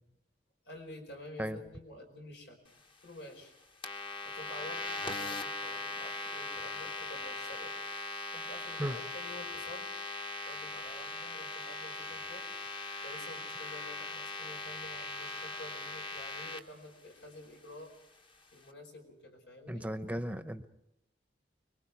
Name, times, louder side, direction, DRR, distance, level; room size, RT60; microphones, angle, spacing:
voice 1, 0.6-3.5 4.2-7.7 8.3-9.9 10.4-12.5 13.0-17.9 18.5-19.9, left 1 dB, 85° left, 3 dB, 5.1 m, -50 dB
sound 1, 3.8-16.6, left 3 dB, 30° left, 1.1 m, -40 dB
voice 2, 19.7-20.6, equal, 10° right, 10 dB, 0.9 m, -35 dB
26.0 x 22.5 x 4.8 m, 0.83 s
head